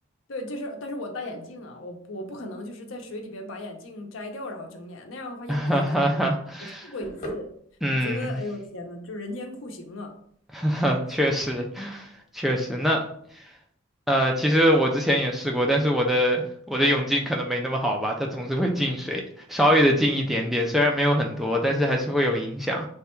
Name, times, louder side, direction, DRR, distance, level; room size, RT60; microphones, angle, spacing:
voice 1, 0.3-6.3 6.6-7.5 7.9-10.2 20.0-20.2, left 1 dB, 70° left, 3 dB, 0.7 m, -37 dB
voice 2, 5.5-6.8 7.8-8.4 10.5-12.1 12.3-13.0 14.1-16.4 16.7-19.2 19.5-22.9, equal, ahead, 0 dB, 0.3 m, -23 dB
sound 1, 7.0-13.6, equal, 35° left, 1.0 m, -45 dB
3.3 x 2.2 x 4.3 m, 0.64 s
head